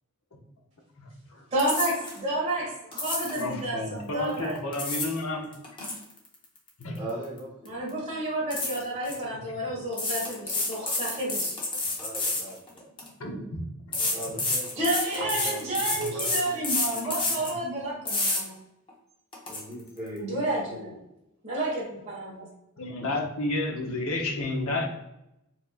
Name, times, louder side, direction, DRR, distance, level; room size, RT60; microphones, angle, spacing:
voice 1, 1.0-1.5 3.4-5.5 5.8-5.9 6.8-7.0 13.2-14.0 15.9-16.1 17.0-17.1 22.8-24.9, left 2 dB, 70° left, 2 dB, 0.8 m, -31 dB
voice 2, 1.5-4.6 7.7-11.6 14.8-18.5 20.2-20.9 21.4-22.4, right 1 dB, 30° right, -6 dB, 1.4 m, -30 dB
sound 1, 1.6-2.2 2.9-3.5 4.5-5.2 5.5-7.4 7.7-7.9 8.5-9.2 9.9-13.1 13.9-17.6 18.1-18.4 18.9-19.0 19.3-19.6, left 2 dB, 20° left, 0.7 m, -29 dB
voice 3, 6.9-8.0 12.0-12.9 14.0-14.9 15.1-17.6 19.5-21.0, right 1 dB, 10° right, -12 dB, 1.0 m, -40 dB
4.6 x 2.7 x 2.4 m, 0.87 s
head